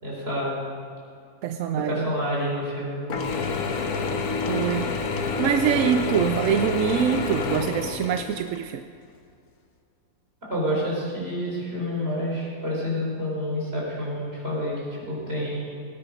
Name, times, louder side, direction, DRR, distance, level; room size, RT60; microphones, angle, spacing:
voice 1, 0.0-0.6 1.9-3.0 10.5-14.7 15.0-15.6, equal, 40° right, -5 dB, 4.7 m, -28 dB
voice 2, 1.4-2.1 4.5-4.9 5.4-8.8, right 9 dB, 70° right, 8 dB, 0.8 m, -24 dB
Mechanisms / Drill, 3.1-8.6, left 4 dB, 70° left, 1.5 m, -28 dB
18.0 x 9.8 x 5.2 m, 2.4 s
omnidirectional pair, 1.6 m